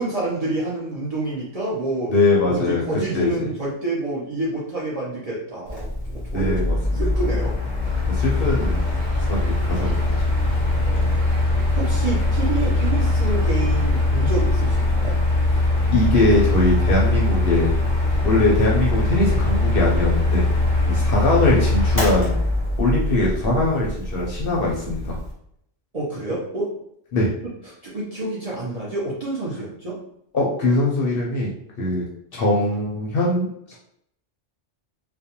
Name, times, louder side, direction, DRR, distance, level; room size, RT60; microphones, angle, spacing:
voice 1, 0.0-2.1 2.5-7.5 10.7-11.2 11.7-15.2 25.9-26.7 27.8-30.0, right 2 dB, 45° right, -7 dB, 0.5 m, -28 dB
voice 2, 2.1-2.8 3.1-3.3 6.3-7.1 8.1-8.8 9.2-10.2 15.9-17.7 18.2-20.4 20.9-22.4 22.8-25.2 27.1-27.3 30.3-31.5 31.8-32.1 32.3-33.8, left 2 dB, 60° left, -3 dB, 0.7 m, -21 dB
Mechanical fan, 5.7-25.3, left 2 dB, 20° left, 0.7 m, -21 dB
sound 1, 7.8-14.0, right 2 dB, 90° right, 1.0 m, -42 dB
2.4 x 2.2 x 2.8 m, 0.73 s
omnidirectional pair, 1.3 m